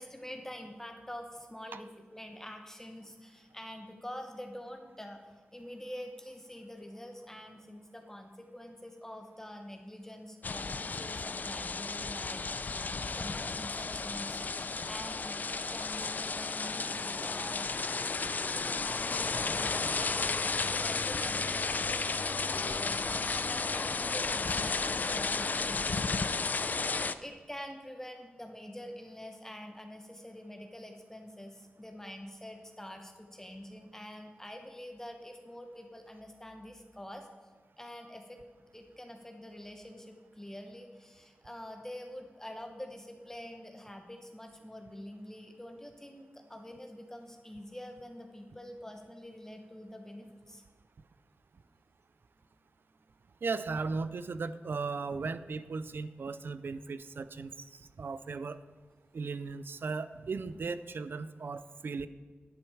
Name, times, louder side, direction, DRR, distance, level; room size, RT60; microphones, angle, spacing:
voice 1, 0.0-5.2 5.5-14.4 14.9-17.7 18.5-20.4 20.7-26.8 27.2-37.3 37.8-38.4 38.7-50.6, left 1 dB, 10° left, 4 dB, 0.9 m, -46 dB
sound 1, 10.4-27.1, left 4 dB, 45° left, 0.4 m, -33 dB
voice 2, 53.4-58.6 59.1-62.1, right 4 dB, 65° right, 14 dB, 0.5 m, -37 dB
10.5 x 8.5 x 4.8 m, 1.5 s
wide cardioid pair, 85°, 4 cm